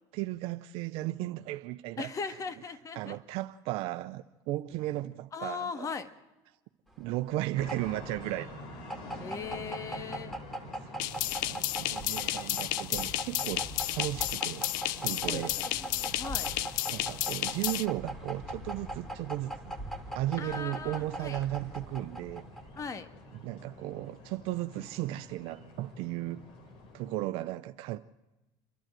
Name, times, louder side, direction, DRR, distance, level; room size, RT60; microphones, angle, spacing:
voice 1, 0.1-2.1 3.0-5.9 7.0-8.6 10.9-13.6 13.9-14.6 14.9-15.6 16.9-19.8 20.1-22.4 23.4-26.4 26.9-28.0, right 16 dB, 70° right, 0.7 m, -35 dB
voice 2, 2.0-3.2 5.3-6.1 9.2-10.4 15.2-16.5 20.4-21.4 22.7-23.1, left 5 dB, 35° left, 1.7 m, -39 dB
sound 1, 6.9-22.9, right 1 dB, 5° left, 3.1 m, -41 dB
sound 2, 7.5-27.3, left 1 dB, 60° left, 3.9 m, -48 dB
sound 3, 11.0-17.8, left 15 dB, 85° left, 0.6 m, -32 dB
29.0 x 12.0 x 7.6 m
supercardioid pair, 105°, 10 cm